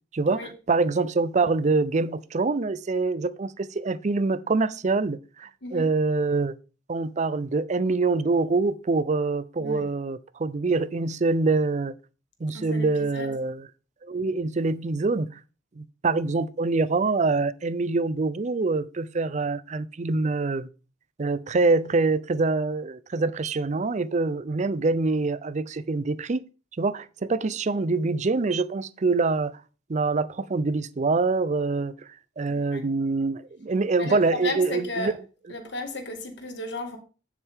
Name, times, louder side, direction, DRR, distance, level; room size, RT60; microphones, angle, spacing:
voice 1, 0.7-6.6 6.9-12.0 12.4-13.7 14.0-15.4 15.8-20.7 21.2-26.4 26.8-29.5 29.9-31.9 32.4-35.1, right 3 dB, 40° right, 0.5 m, -25 dB
voice 2, 12.5-13.3 32.5-32.8 34.0-35.1 35.5-37.0, left 2 dB, 65° left, 2.0 m, -34 dB
9.9 x 7.5 x 3.6 m
head